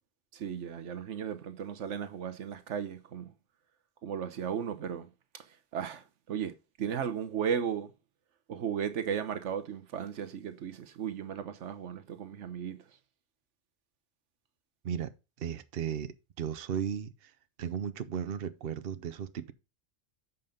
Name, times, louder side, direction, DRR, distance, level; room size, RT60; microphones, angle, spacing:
voice 1, 0.3-3.3 4.0-5.1 5.7-6.5 6.8-7.9 8.5-12.8, right 8 dB, 85° right, 1.2 m, -35 dB
voice 2, 15.4-17.3 17.6-19.5, right 8 dB, 60° right, 0.9 m, -35 dB
7.7 x 5.6 x 5.1 m
omnidirectional pair, 1.2 m